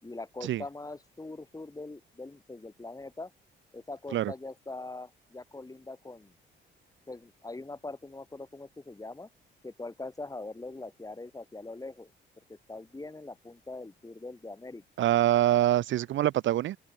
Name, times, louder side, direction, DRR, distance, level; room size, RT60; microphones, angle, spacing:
voice 1, 0.0-3.3 3.7-6.3 7.1-9.3 9.6-12.1 12.5-14.8, left 2 dB, 15° left, 6.2 m, -42 dB
voice 2, 15.0-16.8, right 13 dB, 70° right, 0.9 m, -25 dB
open air
cardioid pair, 90°, 20 cm